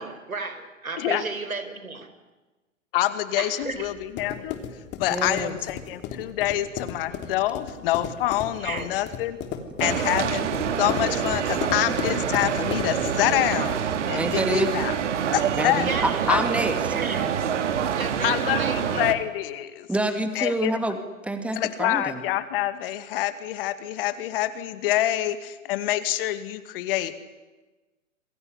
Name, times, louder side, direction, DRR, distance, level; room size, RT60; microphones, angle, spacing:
voice 1, 0.0-2.1 3.4-3.9 8.6-8.9 15.8-16.2 16.9-17.3 17.9-19.0, right 4 dB, 85° right, 9 dB, 4.8 m, -33 dB
voice 2, 2.9-4.5 5.0-9.4 9.8-10.5 10.8-13.8 14.1-14.9 15.3-15.9 16.3-16.4 18.2-19.9 20.3-20.8 21.5-27.2, left 14 dB, 40° left, 12 dB, 2.3 m, -26 dB
sound 1, 3.6-13.4, left 8 dB, 25° left, 3.3 m, -35 dB
voice 3, 5.1-5.5 14.1-14.7 15.6-17.0 19.9-22.2, right 1 dB, 5° right, 8 dB, 2.3 m, -27 dB
sound 2, 9.8-19.1, right 8 dB, 60° right, 2.7 m, -26 dB
27.5 x 22.0 x 9.7 m, 1.2 s
figure-of-eight pair, 120°, 41 cm